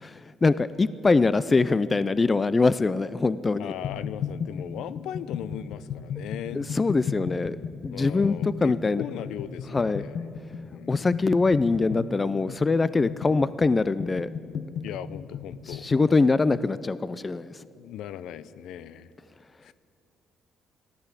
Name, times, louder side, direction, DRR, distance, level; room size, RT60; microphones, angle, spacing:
voice 1, 0.0-3.7 6.5-9.0 9.7-10.1 10.9-14.3 15.7-17.5, left 3 dB, 25° left, 16 dB, 0.4 m, -23 dB
voice 2, 3.6-6.7 7.9-10.2 10.6-11.2 14.8-15.9 17.7-19.1 19.6-19.7, left 10 dB, 85° left, 16 dB, 0.5 m, -38 dB
sound 1, 3.8-16.1, left 7 dB, 70° left, 0.9 m, -35 dB
14.5 x 12.0 x 8.3 m, 2.6 s
cardioid pair, 95°, 0 cm